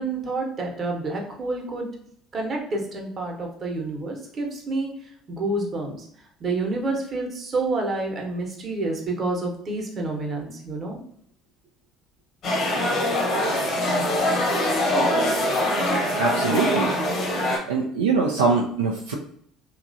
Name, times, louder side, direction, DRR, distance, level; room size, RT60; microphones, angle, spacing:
voice 1, 0.0-1.9 2.3-6.1 6.4-11.0, right 2 dB, 40° right, 0 dB, 0.9 m, -28 dB
sound 1, 12.4-17.6, left 1 dB, 55° left, 0.9 m, -23 dB
voice 2, 16.2-16.9 17.7-19.1, right 4 dB, 80° right, 0 dB, 0.3 m, -23 dB
3.0 x 2.3 x 2.5 m, 0.66 s
hypercardioid pair, 55°, 0 cm